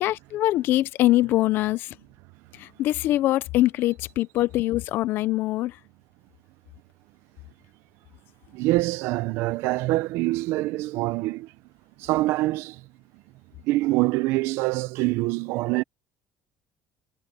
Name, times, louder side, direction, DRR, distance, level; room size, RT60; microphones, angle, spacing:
voice 1, 0.0-1.9 2.5-5.8, left 15 dB, 50° left, 0.5 m, -23 dB
voice 2, 8.5-11.5 12.0-12.8 13.6-15.8, right 19 dB, 75° right, 0.6 m, -25 dB
cardioid pair, 170°, 5 cm